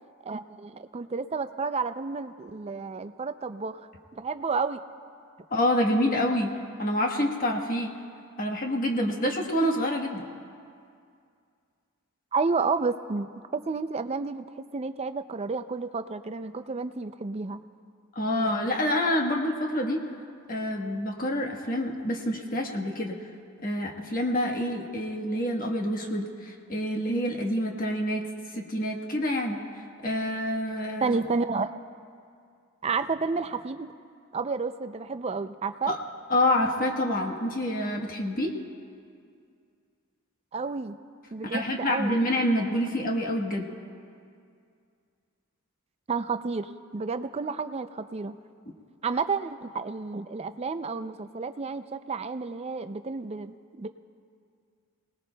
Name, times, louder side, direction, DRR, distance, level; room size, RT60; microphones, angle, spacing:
voice 1, 0.3-3.8 4.1-4.8 12.3-17.6 31.0-31.8 32.8-33.9 34.3-35.9 40.5-41.0 41.3-42.2 46.1-48.4 49.0-53.9, right 4 dB, 25° right, 10 dB, 0.4 m, -31 dB
voice 2, 5.5-7.9 8.4-10.2 18.1-20.0 20.5-23.1 23.6-28.2 28.5-29.6 30.0-31.1 35.9-36.0 36.3-38.5 41.5-43.7, left 1 dB, 40° left, 1 dB, 1.2 m, -27 dB
25.5 x 19.0 x 2.3 m, 2.3 s
head